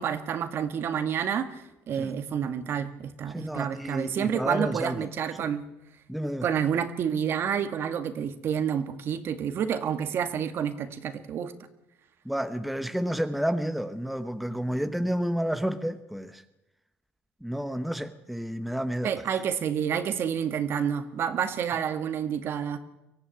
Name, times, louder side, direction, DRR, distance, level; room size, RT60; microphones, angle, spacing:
voice 1, 0.0-5.6 6.4-11.5 19.0-22.8, right 8 dB, 55° right, 1.8 m, -29 dB
voice 2, 3.3-5.1 5.4-5.5 6.1-6.5 12.2-16.4 17.4-19.4, equal, ahead, 1.1 m, -30 dB
24.0 x 14.5 x 9.2 m
cardioid pair, 110°, 5 cm